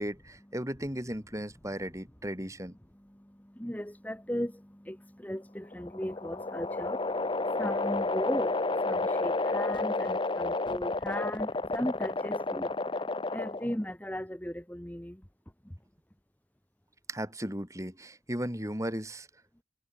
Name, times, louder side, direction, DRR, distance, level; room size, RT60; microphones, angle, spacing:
voice 1, 0.0-2.7 17.1-19.3, equal, 15° right, 6.7 m, -36 dB
voice 2, 3.6-7.1 7.6-8.6 8.8-12.7 13.3-15.2, equal, 10° left, 1.4 m, -36 dB
sound 1, 5.6-13.8, left 3 dB, 25° left, 0.6 m, -31 dB
head